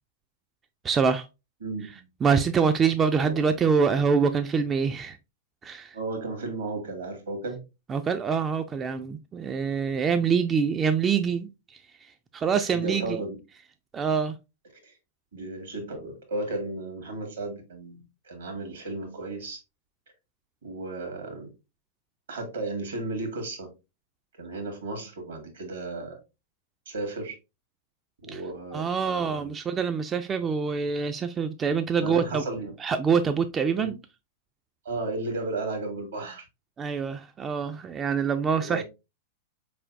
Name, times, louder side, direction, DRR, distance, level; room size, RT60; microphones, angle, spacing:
voice 1, 0.8-1.3 2.2-5.2 5.6-5.9 7.9-13.2 13.9-14.4 28.3-28.4 28.7-32.4 32.8-33.9 36.8-38.8, right 6 dB, 25° right, 0.3 m, -25 dB
voice 2, 1.6-2.1 3.2-3.3 5.9-7.6 12.5-13.3 14.8-14.9 15.3-19.6 20.6-21.5 22.3-23.7 24.4-26.2 26.8-27.3 28.2-29.5 32.0-32.7 33.8-33.9 34.8-36.5 38.6-38.8, right 2 dB, 75° right, 1.6 m, -34 dB
4.4 x 3.4 x 2.5 m
figure-of-eight pair, 100°, 0 cm